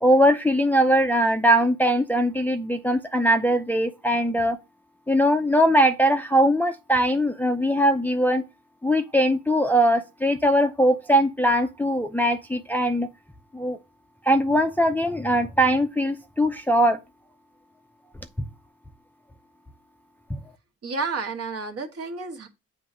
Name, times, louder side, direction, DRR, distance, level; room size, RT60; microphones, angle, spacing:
voice 1, 0.0-4.6 5.1-8.4 8.8-13.1 13.5-13.8 14.2-17.0 20.3-20.4, equal, 5° left, 0.5 m, -21 dB
voice 2, 20.8-22.5, right 4 dB, 50° right, 1.4 m, -31 dB
7.5 x 2.9 x 6.0 m
cardioid pair, 90°, 30 cm